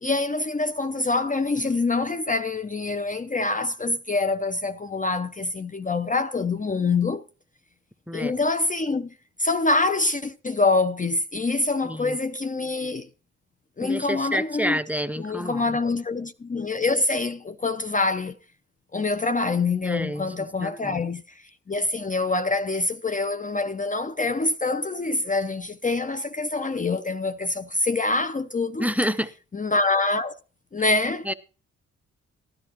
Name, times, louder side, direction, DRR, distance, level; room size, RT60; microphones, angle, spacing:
voice 1, 0.0-7.2 8.1-9.1 9.4-13.1 13.8-14.8 15.2-18.3 18.9-28.9 29.5-30.3 30.7-31.3, left 3 dB, 25° left, 0.7 m, -25 dB
voice 2, 11.8-12.2 13.8-15.6 19.8-21.0 28.8-29.3 31.3-31.4, equal, 5° right, 0.8 m, -28 dB
15.0 x 11.0 x 3.0 m
supercardioid pair, 45°, 33 cm